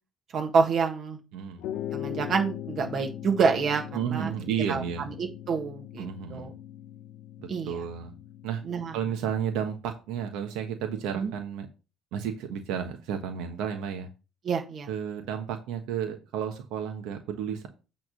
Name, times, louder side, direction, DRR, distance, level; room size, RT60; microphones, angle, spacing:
voice 1, 0.3-1.2 1.9-3.8 4.1-4.3 4.7-4.8 5.2-6.5 7.5-7.8 8.6-8.9 11.2-11.3 14.4-14.9, right 5 dB, 45° right, 3 dB, 1.8 m, -27 dB
voice 2, 1.3-1.6 3.9-5.1 6.0-6.5 7.4-8.1 8.4-8.6 8.9-11.7 12.1-14.1 14.9-17.7, right 8 dB, 80° right, 5 dB, 1.2 m, -32 dB
sound 1, 1.6-9.3, left 11 dB, 80° left, 0.8 m, -40 dB
8.8 x 3.6 x 6.2 m, 0.31 s
cardioid pair, 135°, 0 cm